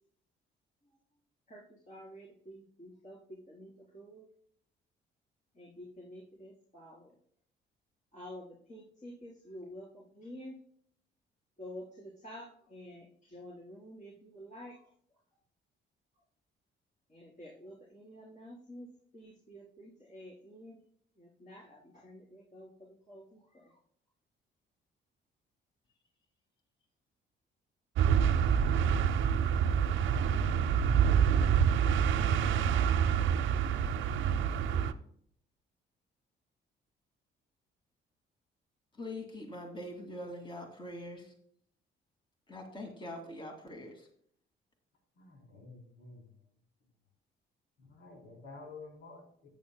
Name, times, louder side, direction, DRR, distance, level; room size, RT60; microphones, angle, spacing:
voice 1, 1.5-4.3 5.5-7.2 8.1-10.6 11.6-15.2 16.1-16.2 17.1-18.9 19.1-20.8 21.2-23.8, equal, 40° left, -5 dB, 4.1 m, -50 dB
sound 1, 28.0-34.9, right 8 dB, 80° right, 0.7 m, -27 dB
voice 2, 39.0-41.3 42.5-44.1, left 1 dB, 25° left, 2 dB, 2.3 m, -43 dB
voice 3, 45.2-46.3 47.8-49.5, left 3 dB, 80° left, 0 dB, 3.6 m, -50 dB
13.0 x 9.3 x 2.2 m, 0.63 s
cardioid pair, 90°, 20 cm